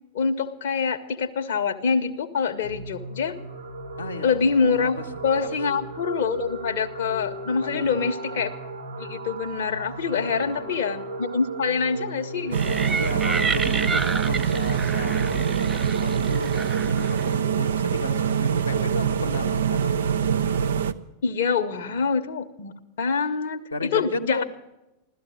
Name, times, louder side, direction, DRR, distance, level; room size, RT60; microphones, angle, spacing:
voice 1, 0.1-3.4 4.2-8.5 9.0-13.0 21.2-24.4, left 5 dB, 55° left, 4 dB, 1.0 m, -25 dB
sound 1, 2.6-19.0, right 2 dB, 80° right, 1.8 m, -38 dB
voice 2, 4.0-4.4 5.0-5.1 5.3-5.8 7.6-7.9 10.1-10.7 13.0-20.3 23.7-24.4, left 3 dB, 80° left, 2 dB, 1.1 m, -35 dB
sound 2, 12.5-17.4, right 4 dB, 15° right, 0.5 m, -30 dB
sound 3, 12.5-20.9, right 7 dB, 65° right, 0.6 m, -24 dB
16.0 x 13.0 x 6.4 m, 0.96 s
figure-of-eight pair, 90°, 0 cm